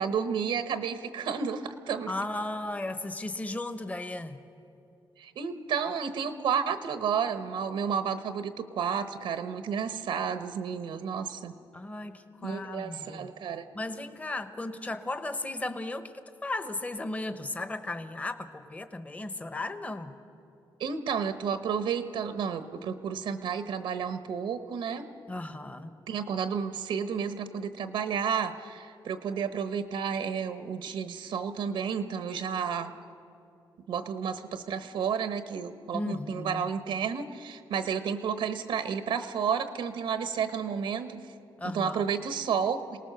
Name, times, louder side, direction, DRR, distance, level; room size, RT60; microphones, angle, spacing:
voice 1, 0.0-2.1 5.2-11.5 12.4-13.7 20.8-25.0 26.1-32.9 33.9-41.3 41.7-43.0, right 7 dB, 85° right, 10 dB, 1.1 m, -31 dB
voice 2, 2.1-4.4 11.7-13.3 13.7-16.1 16.4-20.1 25.3-25.9 35.9-36.6 41.6-42.0, left 2 dB, 20° left, 10 dB, 1.0 m, -35 dB
27.5 x 18.5 x 6.8 m, 2.7 s
cardioid pair, 110°, 8 cm